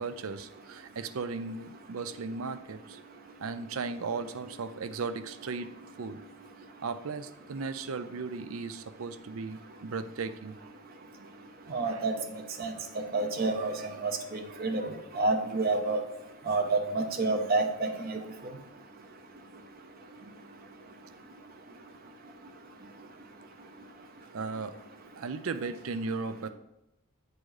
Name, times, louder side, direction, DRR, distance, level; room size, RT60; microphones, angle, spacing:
voice 1, 0.0-3.0 3.4-5.7 6.0-6.2 6.8-10.7 11.7-12.0 24.3-24.8 25.2-26.5, right 4 dB, 80° right, 11 dB, 0.5 m, -36 dB
voice 2, 11.7-12.1 12.6-12.7 13.1-13.7 14.0-14.8 15.1-16.0 16.5-18.2, right 3 dB, 45° right, 5 dB, 0.7 m, -28 dB
9.0 x 4.0 x 4.8 m, 0.90 s
head